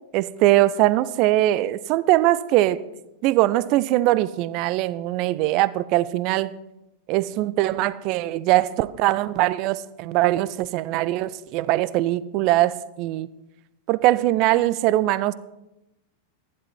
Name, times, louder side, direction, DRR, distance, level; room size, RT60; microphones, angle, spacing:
voice 1, 0.1-2.8 3.2-6.5 7.1-13.3 13.9-15.3, right 16 dB, 40° right, 18 dB, 0.5 m, -21 dB
13.0 x 11.0 x 4.3 m, 0.94 s
figure-of-eight pair, 90°, 0 cm